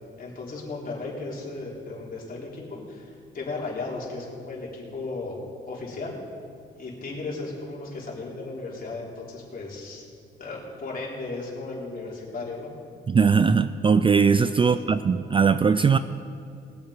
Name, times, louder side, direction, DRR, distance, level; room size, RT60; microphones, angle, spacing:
voice 1, 0.2-3.1 3.3-5.4 5.7-6.2 6.8-10.0 10.4-12.7 14.6-15.0, left 3 dB, 45° left, -4 dB, 3.9 m, -35 dB
voice 2, 13.1-16.0, right 5 dB, 25° right, 13 dB, 0.4 m, -20 dB
21.0 x 7.2 x 5.2 m, 2.4 s
cardioid pair, 90°, 20 cm